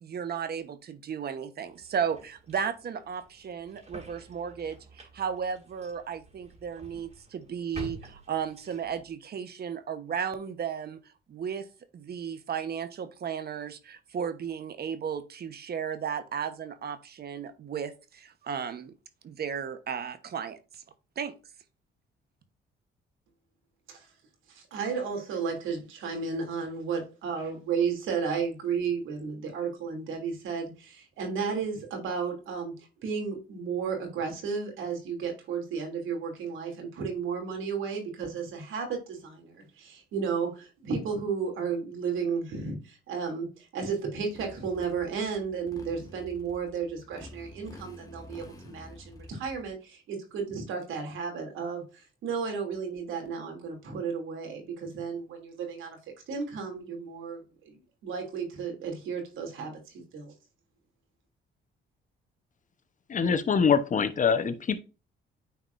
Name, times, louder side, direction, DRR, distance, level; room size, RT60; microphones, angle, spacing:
voice 1, 0.0-11.0 11.3-11.7 11.9-18.9 19.2-20.8 21.2-21.3, right 7 dB, 55° right, 1.1 m, -34 dB
sound 1, 1.7-9.1, right 2 dB, 35° right, 2.8 m, -49 dB
voice 2, 24.5-56.0 56.3-57.8 58.0-60.3, right 5 dB, 85° right, 2.8 m, -33 dB
Motorcycle, 44.3-49.7, left 1 dB, 15° left, 1.8 m, -48 dB
voice 3, 63.1-64.8, left 6 dB, 40° left, 0.9 m, -24 dB
9.3 x 4.7 x 2.6 m
cardioid pair, 90°, 20 cm